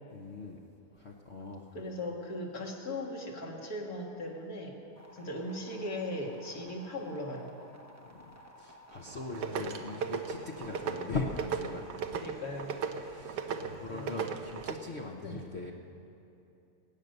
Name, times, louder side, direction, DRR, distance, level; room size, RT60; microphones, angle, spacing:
voice 1, 0.1-0.6 0.9-1.8 8.1-11.8 13.0-15.7, left 3 dB, 45° left, -1 dB, 1.2 m, -40 dB
voice 2, 1.7-4.8 5.1-7.5 12.2-12.8 13.6-14.1 15.2-15.4, left 1 dB, 65° left, -1 dB, 2.4 m, -38 dB
sound 1, 5.0-11.8, equal, 15° right, 0.6 m, -55 dB
sound 2, 9.1-14.7, right 6 dB, 90° right, 1.5 m, -37 dB
22.0 x 9.3 x 6.7 m, 2.8 s
omnidirectional pair, 1.7 m